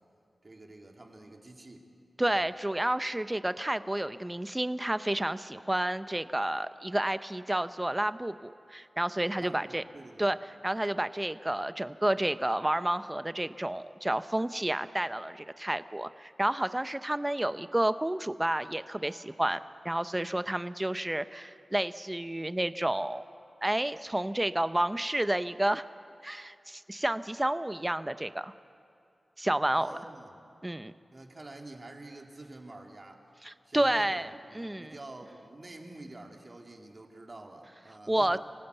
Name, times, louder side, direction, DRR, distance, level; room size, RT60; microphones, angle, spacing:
voice 1, 0.4-1.9 2.2-2.5 9.4-10.3 29.7-30.3 31.1-33.3 33.6-38.4, right 2 dB, 40° right, 2 dB, 2.6 m, -48 dB
voice 2, 2.2-9.8 10.2-10.4 10.6-23.2 23.6-25.9 26.2-28.5 29.4-30.0 30.6-30.9 33.4-34.9 38.1-38.4, right 1 dB, 15° right, 12 dB, 0.7 m, -30 dB
25.5 x 17.5 x 8.1 m, 2.5 s
wide cardioid pair, 75°, 0 cm